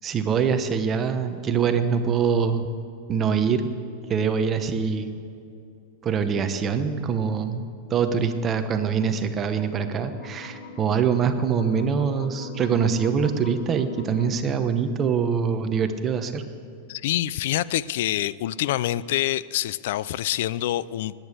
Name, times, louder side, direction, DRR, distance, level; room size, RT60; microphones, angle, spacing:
voice 1, 0.0-2.7 3.1-3.7 4.1-5.1 6.0-7.6 7.9-16.4, right 6 dB, 20° right, 8 dB, 0.9 m, -24 dB
sound 1, 9.1-14.3, left 3 dB, 85° left, 1.7 m, -40 dB
voice 2, 16.9-21.1, left 13 dB, 65° left, 19 dB, 0.4 m, -26 dB
20.0 x 9.0 x 6.6 m, 2.6 s
supercardioid pair, 150°, 0 cm